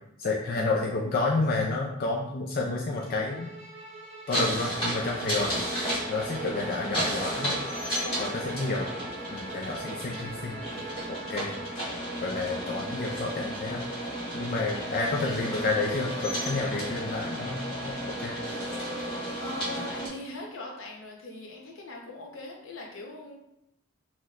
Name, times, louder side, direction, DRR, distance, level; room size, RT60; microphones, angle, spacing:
voice 1, 0.2-3.5 4.3-5.6 6.1-7.5 8.2-8.9 9.3-10.6 11.1-11.6 12.2-13.8 14.3-18.4, left 3 dB, 50° left, -1 dB, 0.4 m, -30 dB
Bowed string instrument, 2.9-12.0, right 1 dB, 30° right, 0.9 m, -43 dB
sound 1, 4.3-20.1, right 1 dB, 25° left, 1.5 m, -33 dB
voice 2, 8.0-8.3 14.7-15.7 16.0-17.0 19.3-23.4, left 1 dB, 80° left, -1 dB, 0.9 m, -41 dB
5.7 x 2.9 x 2.5 m, 0.82 s
head